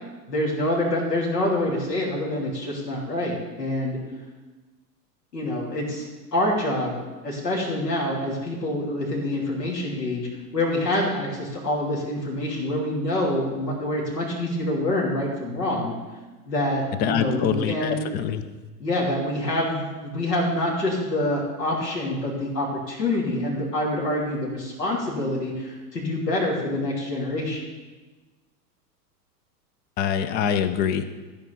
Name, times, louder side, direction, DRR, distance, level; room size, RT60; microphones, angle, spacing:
voice 1, 0.3-4.0 5.3-6.0 6.3-15.9 16.5-18.0 18.8-27.6, left 1 dB, 80° left, -3 dB, 3.0 m, -26 dB
voice 2, 17.0-18.4 30.0-31.0, left 8 dB, 20° left, 12 dB, 0.5 m, -24 dB
14.0 x 4.9 x 6.9 m, 1.2 s
figure-of-eight pair, 95°, 49 cm